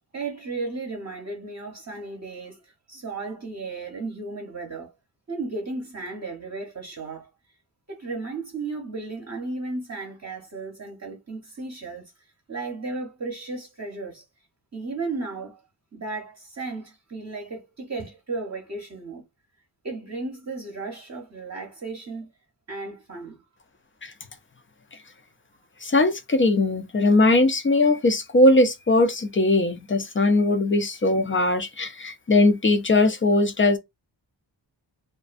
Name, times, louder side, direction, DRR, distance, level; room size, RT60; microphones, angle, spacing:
voice 1, 0.1-4.9 5.3-7.3 7.9-12.1 12.5-14.2 14.7-15.6 15.9-19.3 19.8-22.3 22.7-23.4, right 3 dB, 35° right, 0.7 m, -34 dB
voice 2, 25.8-33.8, left 2 dB, 30° left, 0.4 m, -20 dB
2.4 x 2.2 x 2.4 m
wide cardioid pair, 110°, 45 cm